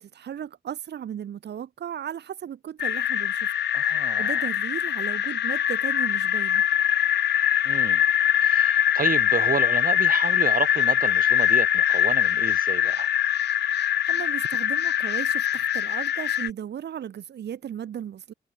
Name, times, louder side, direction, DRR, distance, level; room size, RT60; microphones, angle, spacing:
voice 1, 0.0-6.6 13.7-18.3, right 9 dB, 75° right, 5.2 m, -36 dB
sound 1, 2.8-16.5, left 10 dB, 80° left, 3.4 m, -23 dB
voice 2, 3.7-4.4 7.6-8.0 8.4-13.1, right 6 dB, 55° right, 4.0 m, -31 dB
cardioid pair, 60°, 17 cm